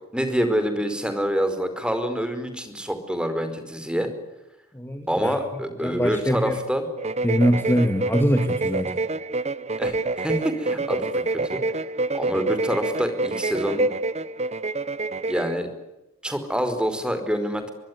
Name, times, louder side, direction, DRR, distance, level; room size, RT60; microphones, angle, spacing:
voice 1, 0.1-4.1 5.1-6.8 9.8-11.6 12.1-13.9 15.3-15.7 16.2-17.7, equal, 5° right, 9 dB, 4.9 m, -26 dB
voice 2, 4.7-5.4 5.8-6.6 7.2-8.9, equal, 10° left, 6 dB, 2.3 m, -23 dB
sound 1, 7.0-15.5, right 2 dB, 30° right, 1.1 m, -27 dB
24.0 x 23.5 x 9.6 m, 0.97 s
head